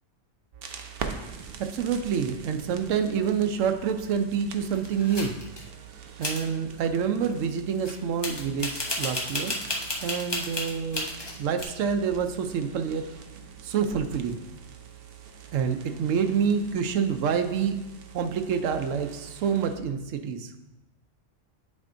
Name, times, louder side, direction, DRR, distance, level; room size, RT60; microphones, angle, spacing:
sound 1, 0.5-19.8, right 7 dB, 60° right, 0.7 m, -44 dB
voice 1, 1.6-5.4 6.2-9.5 10.0-11.1 11.4-13.0 13.6-14.4 15.5-17.8 18.1-20.5, right 7 dB, 80° right, 7 dB, 1.0 m, -27 dB
sound 2, 4.7-5.7 6.2-6.4 7.9-8.0 8.2-11.6, left 1 dB, 25° left, 0.6 m, -32 dB
9.6 x 4.3 x 2.6 m, 0.94 s
omnidirectional pair, 1.3 m